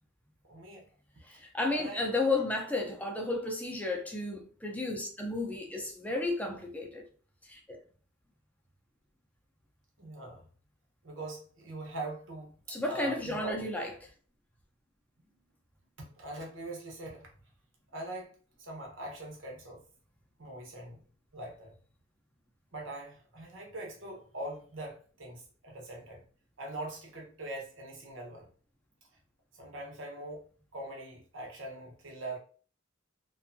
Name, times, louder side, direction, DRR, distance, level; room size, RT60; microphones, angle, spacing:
voice 1, 0.5-0.8 1.7-2.0 10.0-10.5 11.0-13.6 16.0-17.3 17.9-18.3 18.6-19.8 20.4-21.0 21.3-21.7 22.7-26.2 26.6-28.5 29.6-30.4 30.7-32.4, right 1 dB, 70° right, 0.9 m, -42 dB
voice 2, 1.3-7.0 7.4-7.8 12.7-13.9, left 2 dB, 10° left, 0.5 m, -33 dB
2.6 x 2.3 x 2.6 m
head